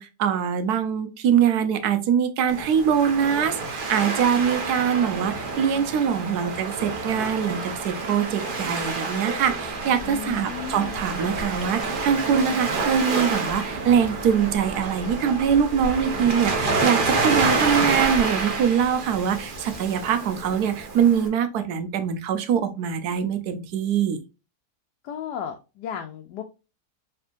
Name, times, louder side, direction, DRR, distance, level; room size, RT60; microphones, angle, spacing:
voice 1, 0.0-24.2, right 8 dB, 75° right, 1.2 m, -23 dB
Waves surf, 2.5-21.3, right 3 dB, 40° right, 0.9 m, -28 dB
voice 2, 10.0-11.0 25.0-26.4, left 9 dB, 90° left, 1.2 m, -34 dB
4.3 x 3.4 x 2.5 m
omnidirectional pair, 1.7 m